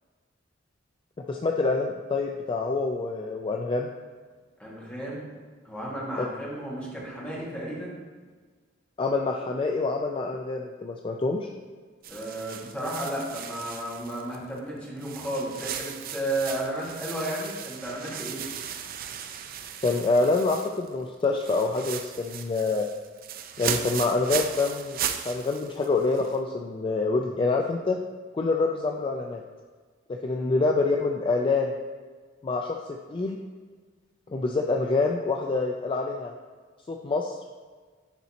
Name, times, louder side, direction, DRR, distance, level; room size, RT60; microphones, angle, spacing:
voice 1, 1.3-3.9 6.2-6.3 9.0-11.5 19.8-22.9 23.6-25.0 25.2-28.0 28.3-29.4 30.2-31.7 32.4-32.8 33.1-33.4 34.3-36.3 36.9-37.4, left 3 dB, 25° left, 2 dB, 0.3 m, -26 dB
voice 2, 4.6-5.3 5.6-7.9 12.1-18.4 30.3-30.5, right 1 dB, 5° left, -6 dB, 1.6 m, -33 dB
sound 1, 12.0-14.6 15.0-21.0 21.2-26.4, right 8 dB, 50° right, 0.4 m, -36 dB
10.0 x 4.0 x 2.8 m, 1.5 s
head